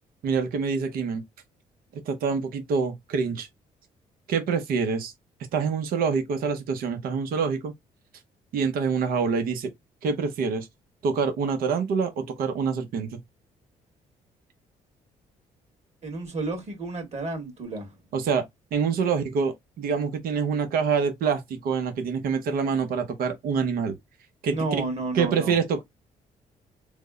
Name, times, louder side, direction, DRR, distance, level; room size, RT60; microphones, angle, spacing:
voice 1, 0.2-1.2 2.1-3.5 4.3-5.1 5.5-7.7 8.5-9.7 10.0-10.7 11.0-13.2 18.1-18.4 18.7-24.0 24.4-24.6 25.1-25.8, right 5 dB, 75° right, 0.8 m, -26 dB
voice 2, 16.0-18.0 24.5-25.6, right 3 dB, 45° right, 1.9 m, -31 dB
3.4 x 2.1 x 3.6 m
supercardioid pair, 70°, 15 cm